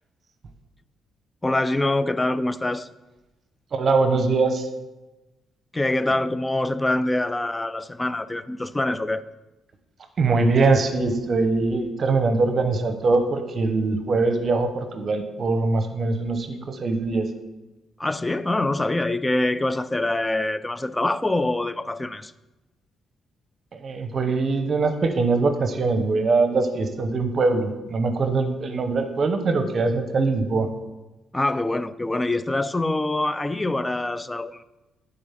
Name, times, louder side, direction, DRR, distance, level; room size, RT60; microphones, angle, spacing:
voice 1, 1.4-2.9 5.7-9.2 18.0-22.3 31.3-34.6, left 2 dB, 15° left, 0.4 m, -25 dB
voice 2, 3.7-4.7 10.2-17.3 23.7-30.7, right 3 dB, 45° right, 0.9 m, -22 dB
9.2 x 3.9 x 5.8 m
cardioid pair, 90°, 0 cm